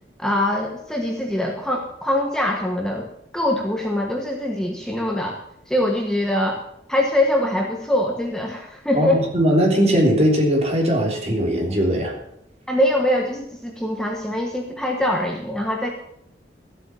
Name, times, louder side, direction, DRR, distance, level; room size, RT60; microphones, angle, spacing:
voice 1, 0.2-3.1 3.3-5.4 5.7-6.6 6.9-9.2 12.7-15.9, left 1 dB, 5° left, 0 dB, 1.3 m, -23 dB
voice 2, 8.9-12.2, equal, 35° right, 0 dB, 3.3 m, -19 dB
14.0 x 8.1 x 7.1 m, 0.76 s
head